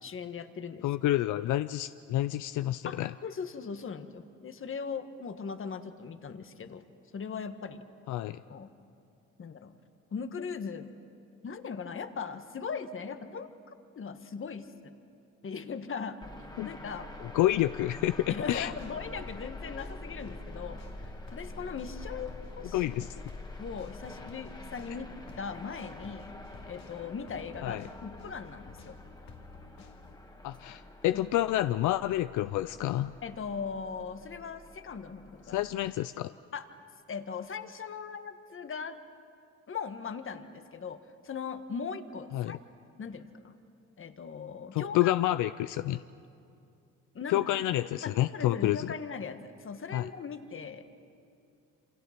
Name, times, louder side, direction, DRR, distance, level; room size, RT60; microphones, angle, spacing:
voice 1, 0.0-0.8 2.8-6.8 7.1-7.8 8.5-8.7 9.4-9.7 10.1-10.9 11.4-14.9 15.4-16.2 16.6-17.1 18.3-22.9 23.6-26.3 26.6-29.0 31.1-31.2 33.2-35.6 36.5-36.7 37.1-39.0 39.7-42.6 43.0-43.5 44.0-45.1 47.1-47.4 48.0-50.9, left 5 dB, 45° left, 9 dB, 1.5 m, -39 dB
voice 2, 0.8-3.1 8.1-8.4 16.6-16.7 17.3-18.7 22.7-23.1 27.6-27.8 30.4-33.1 35.5-36.3 42.3-42.6 44.7-46.0 47.3-48.9 49.9-50.0, left 14 dB, 80° left, 13 dB, 0.5 m, -29 dB
sound 1, 16.2-35.9, left 2 dB, 15° left, 2.1 m, -46 dB
sound 2, 18.2-30.2, left 3 dB, 65° left, 2.6 m, -53 dB
28.0 x 26.0 x 5.9 m, 2.5 s
cardioid pair, 90°, 30 cm